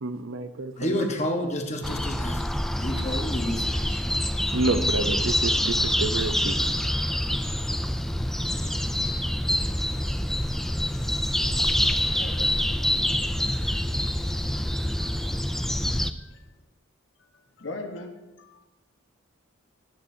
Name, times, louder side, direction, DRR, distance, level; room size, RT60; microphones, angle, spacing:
voice 1, 0.0-1.0 4.5-6.6, right 3 dB, 90° right, 10 dB, 0.7 m, -29 dB
voice 2, 0.8-2.5 2.8-4.0, left 1 dB, 35° left, 4 dB, 1.3 m, -30 dB
sound 1, 1.8-16.1, left 1 dB, ahead, 0.3 m, -26 dB
voice 3, 11.8-12.5 15.0-15.1 16.2-16.4 17.6-18.1 18.4-18.7, left 2 dB, 65° left, 4 dB, 1.3 m, -40 dB
18.5 x 9.0 x 2.8 m, 1.1 s
head